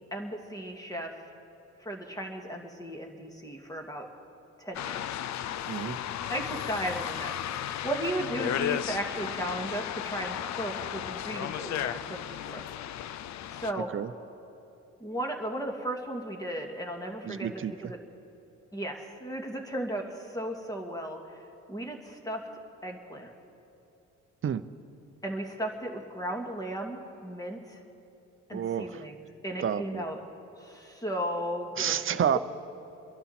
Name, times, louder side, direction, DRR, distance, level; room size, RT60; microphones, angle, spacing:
voice 1, 0.1-1.2 1.8-4.1 4.6-5.0 6.3-12.2 12.5-12.6 13.5-13.9 15.0-17.5 17.8-18.0 18.7-21.2 21.7-22.5 22.8-23.3 25.2-27.8 28.5-29.1 29.4-30.2 30.6-32.0, right 1 dB, 10° left, 2 dB, 2.2 m, -35 dB
sound 1, 4.7-13.7, left 11 dB, 65° left, 0.6 m, -34 dB
voice 2, 5.7-6.0 13.9-14.1 17.2-17.9 24.4-24.6 28.5-29.0 29.6-30.0 31.8-32.4, right 8 dB, 45° right, 12 dB, 0.7 m, -29 dB
28.5 x 11.0 x 4.4 m, 2.9 s
cardioid pair, 90°, 30 cm